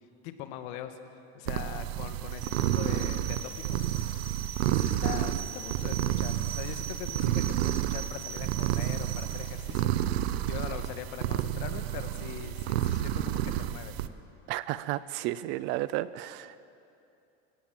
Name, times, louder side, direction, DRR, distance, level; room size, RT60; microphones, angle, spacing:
voice 1, 0.2-1.0 1.3-4.3 4.6-10.1 10.5-13.9, left 10 dB, 60° left, 8 dB, 1.7 m, -42 dB
sound 1, 1.5-14.1, right 12 dB, 85° right, 1.0 m, -30 dB
sound 2, 2.3-9.4, right 7 dB, 55° right, 3.4 m, -42 dB
voice 2, 14.5-16.6, right 15 dB, 40° right, 16 dB, 0.5 m, -32 dB
25.0 x 17.0 x 7.6 m, 2.7 s
supercardioid pair, 170°, 30 cm